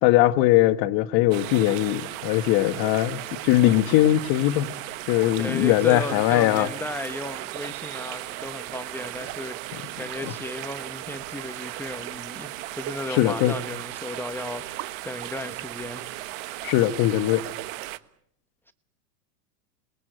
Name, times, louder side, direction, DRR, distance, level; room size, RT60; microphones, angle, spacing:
voice 1, 0.0-4.7 5.1-6.7 13.1-13.6 16.6-17.4, left 15 dB, 45° left, 1.6 m, -20 dB
sound 1, 1.3-18.0, right 16 dB, 55° right, 1.4 m, -36 dB
voice 2, 5.4-16.2 18.7-18.8, left 1 dB, 5° left, 1.0 m, -35 dB
27.5 x 21.5 x 7.9 m
supercardioid pair, 135°, 48 cm